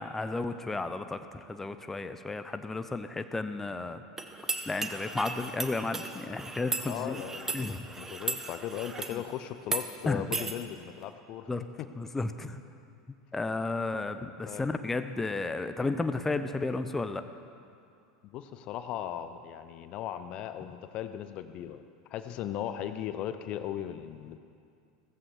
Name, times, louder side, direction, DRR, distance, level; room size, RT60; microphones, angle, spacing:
voice 1, 0.0-4.0 4.7-7.2 7.5-7.9 9.1-9.2 10.1-10.2 11.5-11.6 12.0-12.6 13.3-17.2, left 3 dB, 10° left, 9 dB, 0.8 m, -33 dB
sound 1, 4.2-9.2 9.6-9.8 10.3-10.5, right 3 dB, 15° right, 1.2 m, -36 dB
voice 2, 6.9-7.7 8.0-11.5 11.8-11.9 14.4-14.6 18.2-21.8 22.1-24.4, left 10 dB, 45° left, 10 dB, 0.7 m, -37 dB
16.0 x 15.0 x 4.7 m, 2.4 s
figure-of-eight pair, 80°, 2 cm